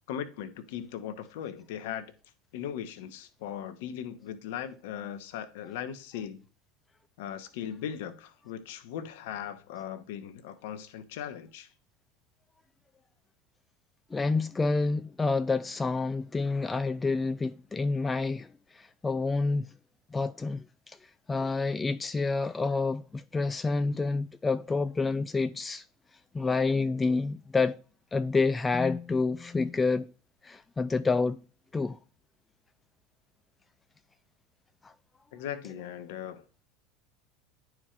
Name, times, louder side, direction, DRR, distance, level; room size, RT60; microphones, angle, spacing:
voice 1, 0.1-2.1 2.5-6.4 7.2-11.7 35.3-36.4, left 9 dB, 60° left, 0.8 m, -38 dB
voice 2, 14.1-19.7 20.1-25.8 26.3-27.8 28.1-30.1 30.4-31.4 31.7-32.0 34.8-34.9, left 3 dB, 15° left, 0.3 m, -28 dB
11.0 x 4.5 x 2.4 m
figure-of-eight pair, 75°, 0 cm